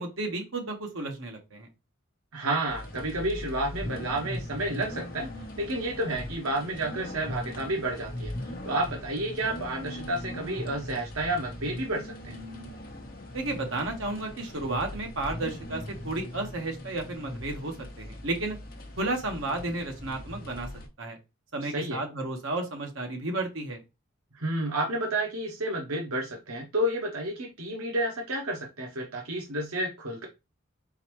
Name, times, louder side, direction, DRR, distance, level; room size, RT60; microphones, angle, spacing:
voice 1, 0.0-1.7 13.3-18.6 19.0-20.7 21.0-21.2 21.5-23.8, right 2 dB, 65° right, 3 dB, 1.3 m, -32 dB
voice 2, 2.3-5.3 5.6-8.3 8.6-12.4 21.6-22.0 24.3-30.3, right 1 dB, 85° right, 1 dB, 0.9 m, -30 dB
sound 1, 2.7-20.9, left 1 dB, 45° left, 0.9 m, -40 dB
4.1 x 4.0 x 3.0 m, 0.25 s
head